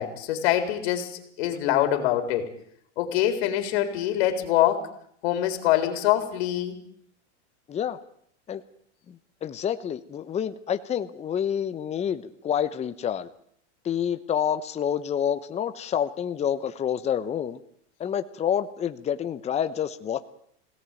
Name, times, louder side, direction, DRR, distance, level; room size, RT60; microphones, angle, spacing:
voice 1, 0.0-2.5 3.0-4.9 5.2-6.8, left 12 dB, 60° left, 7 dB, 3.9 m, -24 dB
voice 2, 9.4-13.3 13.8-17.6 18.0-20.2, left 9 dB, 20° left, 10 dB, 1.0 m, -28 dB
21.0 x 17.5 x 9.1 m, 0.67 s
supercardioid pair, 140°, 35 cm